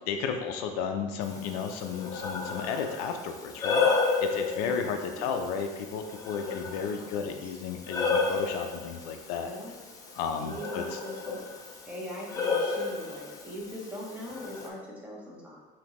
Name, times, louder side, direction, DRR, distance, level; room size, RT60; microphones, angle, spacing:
voice 1, 0.1-9.5 10.2-11.0, left 6 dB, 80° left, 5 dB, 0.5 m, -33 dB
Breathing, 1.2-14.7, left 4 dB, 15° left, 0.5 m, -33 dB
voice 2, 4.6-5.3 6.5-7.4 9.4-9.7 10.4-11.4 11.9-15.6, equal, 5° right, -4 dB, 0.9 m, -41 dB
5.1 x 2.8 x 3.0 m, 1.2 s
cardioid pair, 155°, 20 cm